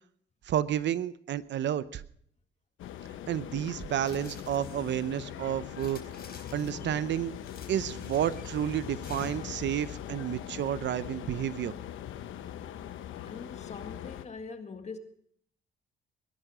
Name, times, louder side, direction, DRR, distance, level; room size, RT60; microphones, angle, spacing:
voice 1, 0.5-2.0 3.3-6.0 6.5-7.4 7.7-11.7, right 10 dB, 65° right, 0.7 m, -31 dB
sound 1, 2.8-14.3, left 11 dB, 85° left, 1.1 m, -41 dB
sound 2, 4.0-5.1 5.7-6.9 7.4-8.5 9.0-9.7, left 5 dB, 50° left, 4.2 m, -48 dB
voice 2, 13.2-15.0, left 4 dB, 35° left, 2.0 m, -42 dB
21.5 x 11.0 x 4.9 m
cardioid pair, 90°, 20 cm